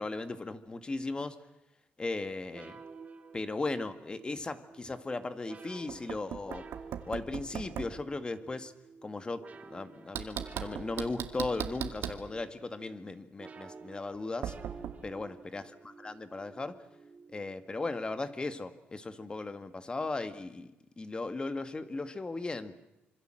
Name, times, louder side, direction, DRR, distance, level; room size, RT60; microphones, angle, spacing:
voice 1, 0.0-1.4 2.0-2.8 3.3-6.7 7.1-8.7 9.0-14.5 15.0-16.8 17.3-20.7 21.0-22.8, left 3 dB, 25° left, 11 dB, 1.9 m, -37 dB
sound 1, 2.5-18.7, right 4 dB, 40° right, 2.3 m, -52 dB
Knock, 5.9-8.0 10.2-12.3 14.4-14.9, right 9 dB, 80° right, 2.2 m, -38 dB
26.5 x 24.5 x 7.8 m, 0.95 s
cardioid pair, 105°, 4 cm